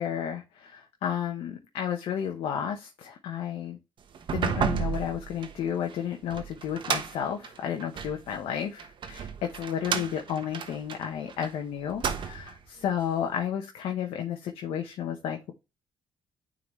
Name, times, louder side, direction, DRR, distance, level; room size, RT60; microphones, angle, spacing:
voice 1, 0.0-3.8 4.3-15.5, left 9 dB, 85° left, 4 dB, 0.9 m, -32 dB
sound 1, 4.1-8.2 8.8-11.5 11.9-12.6, right 7 dB, 60° right, 1.1 m, -32 dB
9.4 x 3.9 x 3.1 m, 0.26 s
cardioid pair, 75°, 9 cm